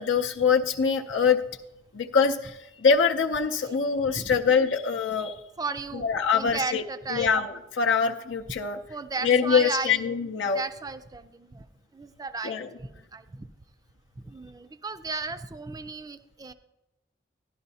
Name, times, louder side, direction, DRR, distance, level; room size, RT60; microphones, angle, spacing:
voice 1, 0.0-1.4 1.9-5.3 5.9-6.8 7.1-8.8 9.2-10.6 12.4-12.7, left 6 dB, 80° left, 3 dB, 0.5 m, -24 dB
voice 2, 5.6-6.1 6.3-7.3 8.9-10.0 10.5-11.7 11.9-13.5 14.2-16.5, right 4 dB, 20° right, 11 dB, 0.4 m, -34 dB
12.0 x 11.5 x 2.7 m, 0.95 s
head